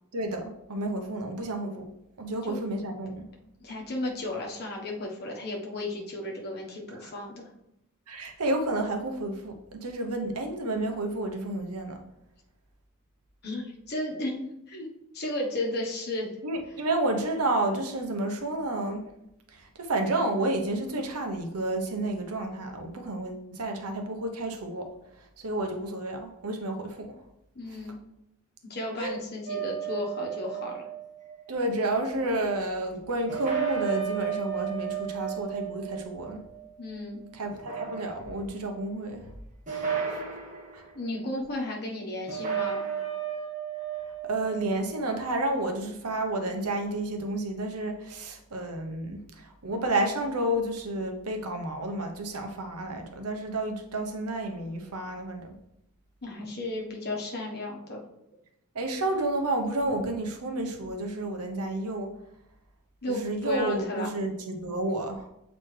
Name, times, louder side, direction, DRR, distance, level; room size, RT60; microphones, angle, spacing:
voice 1, 0.1-1.9 2.2-3.3 8.1-12.0 16.4-19.1 19.5-24.9 25.2-27.2 27.7-27.8 29.0-29.2 31.5-36.5 37.3-39.3 39.7-40.2 40.7-40.9 44.2-55.6 58.7-62.1 63.1-65.3, right 1 dB, 85° right, 4 dB, 0.9 m, -31 dB
voice 2, 3.6-7.5 13.4-14.9 15.1-16.3 27.5-28.0 28.7-30.9 36.8-37.2 40.9-42.8 56.2-58.0 63.0-64.1, left 1 dB, 45° left, -1 dB, 1.3 m, -34 dB
sound 1, 29.5-31.5 33.3-37.0 37.5-38.5 39.7-40.8 42.3-45.0, right 8 dB, 35° right, 1.2 m, -34 dB
7.6 x 4.1 x 3.3 m, 0.83 s
head